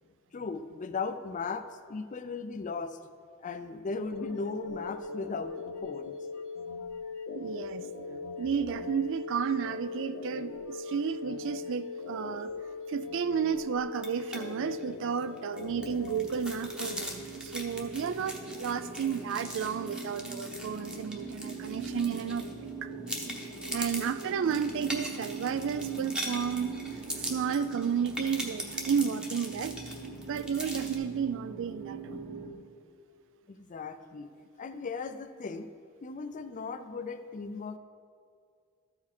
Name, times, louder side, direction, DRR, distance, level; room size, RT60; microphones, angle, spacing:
voice 1, 0.3-3.0 3.4-5.5 5.8-6.2 33.5-34.3 34.6-35.7 36.0-37.8, left 4 dB, 35° left, 10 dB, 0.4 m, -37 dB
sound 1, 4.1-16.5, left 4 dB, 70° left, 0.8 m, -40 dB
voice 2, 7.3-7.8 8.4-12.5 12.9-22.9 23.7-26.7 27.3-29.7 30.3-32.3, right 7 dB, 60° right, 13 dB, 0.3 m, -32 dB
sound 2, 13.9-14.4 14.7-14.8 15.2-22.7 23.1-31.0, equal, 5° right, 0.9 m, -40 dB
sound 3, 15.6-32.5, right 4 dB, 40° right, 1.1 m, -41 dB
13.0 x 4.8 x 4.3 m, 2.2 s
head